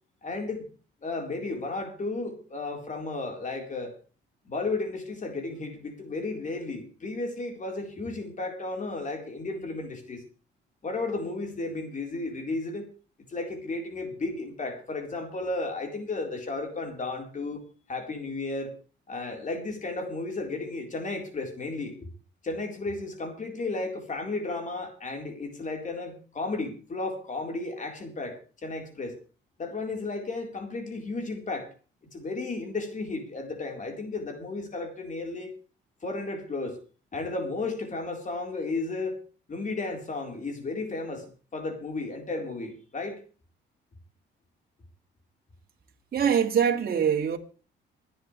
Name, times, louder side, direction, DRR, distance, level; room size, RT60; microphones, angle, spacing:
voice 1, 0.2-0.7 1.0-4.0 4.4-10.2 10.8-12.9 13.3-17.6 17.9-18.7 19.1-22.1 22.4-29.2 29.6-31.7 32.1-35.5 36.0-36.8 37.1-39.2 39.5-43.2, left 3 dB, 40° left, 4.2 m, -33 dB
voice 2, 46.1-47.4, right 8 dB, 50° right, 2.7 m, -23 dB
26.0 x 10.5 x 3.3 m
cardioid pair, 90°, 20 cm